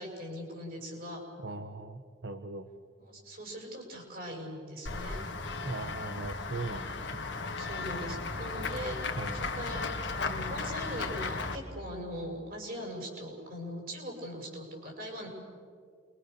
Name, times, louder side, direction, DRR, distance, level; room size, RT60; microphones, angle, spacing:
voice 1, 0.0-1.2 3.1-5.2 7.6-9.8 10.1-15.3, equal, 45° right, 1 dB, 6.9 m, -40 dB
voice 2, 1.4-2.7 5.6-7.2 9.2-9.5, right 2 dB, 60° right, 9 dB, 1.0 m, -39 dB
Run / Walk footsteps / Bell, 4.9-11.6, left 3 dB, 60° left, 1.9 m, -35 dB
29.0 x 23.5 x 6.8 m, 2.1 s
head